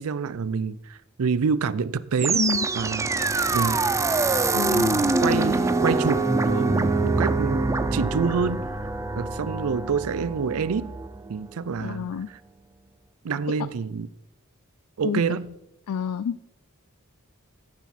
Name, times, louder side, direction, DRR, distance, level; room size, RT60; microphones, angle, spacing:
voice 1, 0.0-2.4 2.8-3.3 3.5-3.8 4.6-7.7 7.9-8.7 9.2-10.9 11.3-12.4 13.2-14.1 15.0-15.6, right 5 dB, 80° right, 0.5 m, -27 dB
sound 1, 2.2-11.3, right 3 dB, 15° right, 0.3 m, -24 dB
voice 2, 2.3-2.7 4.5-5.2 11.8-12.3 15.0-15.2 15.9-16.5, left 7 dB, 80° left, 0.4 m, -28 dB
15.0 x 6.3 x 4.2 m
head